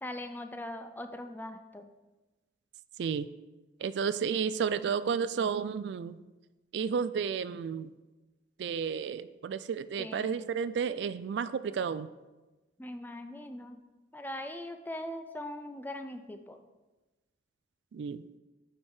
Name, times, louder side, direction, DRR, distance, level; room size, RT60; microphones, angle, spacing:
voice 1, 0.0-1.9 10.0-10.5 12.8-13.8 14.1-16.6, left 1 dB, 10° left, 7 dB, 0.4 m, -41 dB
voice 2, 3.0-3.3 3.8-6.2 6.7-7.9 8.6-12.1 17.9-18.2, right 6 dB, 70° right, 14 dB, 0.3 m, -32 dB
8.6 x 4.5 x 4.8 m, 1.1 s
head